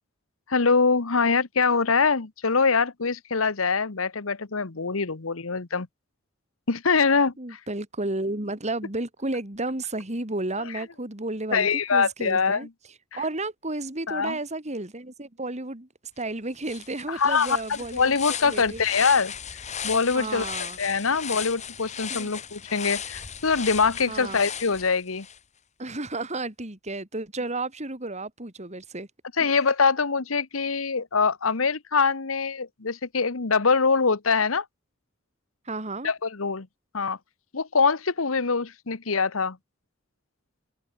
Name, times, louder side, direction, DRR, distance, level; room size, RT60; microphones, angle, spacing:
voice 1, 0.5-5.9 6.7-7.6 11.5-12.7 14.1-14.4 17.1-17.6 17.9-19.3 19.8-20.5 20.8-25.3 29.4-34.6 36.0-36.7 36.9-37.2 37.5-39.6, left 5 dB, 85° left, 1.2 m, -24 dB
voice 2, 7.4-12.7 13.2-15.9 16.2-18.1 18.4-18.8 20.1-20.8 22.1-22.3 24.1-24.4 25.8-29.1 29.4-29.5 35.6-36.1, right 2 dB, 35° right, 3.1 m, -32 dB
sound 1, 16.2-16.3 16.6-25.4, left 8 dB, 35° left, 2.2 m, -36 dB
head